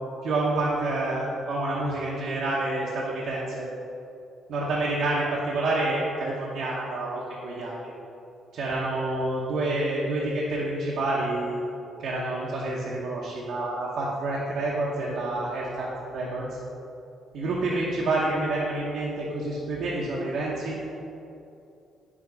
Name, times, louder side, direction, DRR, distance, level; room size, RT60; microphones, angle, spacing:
voice 1, 0.2-3.7 4.5-7.7 8.5-11.6 12.0-15.9 16.1-16.5 17.3-20.8, right 2 dB, 75° right, -5 dB, 0.9 m, -28 dB
5.0 x 4.5 x 5.2 m, 2.6 s
cardioid pair, 90°, 0 cm